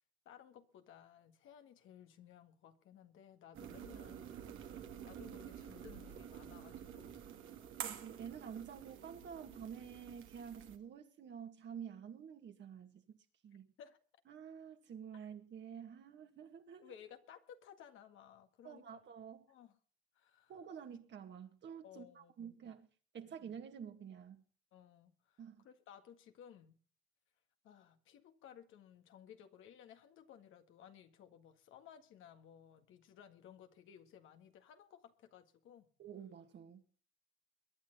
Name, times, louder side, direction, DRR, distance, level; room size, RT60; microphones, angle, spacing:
voice 1, 0.3-4.3 4.6-4.7 5.0-7.2 13.8-14.0 16.8-19.0 19.5-19.8 20.2-20.5 21.8-22.3 23.2-23.3 24.7-26.8 27.6-35.9, left 9 dB, 85° left, 1.8 m, -58 dB
sound 1, 3.5-10.8, right 9 dB, 85° right, 2.1 m, -49 dB
voice 2, 7.8-13.2 13.4-13.7 14.3-17.0 18.6-19.4 20.5-22.9 23.1-24.4 25.4-25.7 36.0-36.8, right 7 dB, 65° right, 2.2 m, -49 dB
22.5 x 10.0 x 4.0 m
cardioid pair, 90°, 20 cm